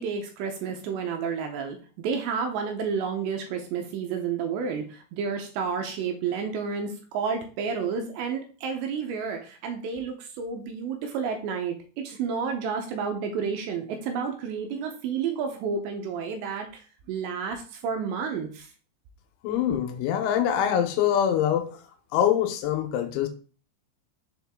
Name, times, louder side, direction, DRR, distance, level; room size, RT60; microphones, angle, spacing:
voice 1, 0.0-18.7, right 6 dB, 80° right, 5 dB, 2.8 m, -31 dB
voice 2, 19.4-21.7 22.1-23.3, left 9 dB, 90° left, 6 dB, 3.2 m, -24 dB
6.7 x 4.5 x 3.5 m, 0.39 s
omnidirectional pair, 5.5 m